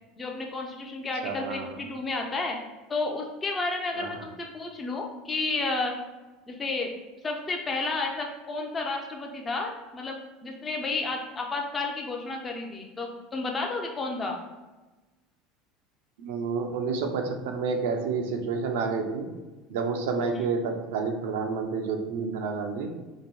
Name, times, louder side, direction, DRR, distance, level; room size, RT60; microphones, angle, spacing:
voice 1, 0.2-2.6 2.9-5.9 6.5-6.9 7.2-14.4 20.3-20.5, left 3 dB, 20° left, 1 dB, 0.5 m, -31 dB
voice 2, 1.2-1.8 4.0-4.2 16.2-19.3 19.7-22.9, right 4 dB, 85° right, 4 dB, 0.5 m, -29 dB
2.9 x 2.6 x 4.3 m, 1.2 s
supercardioid pair, 120°, 0 cm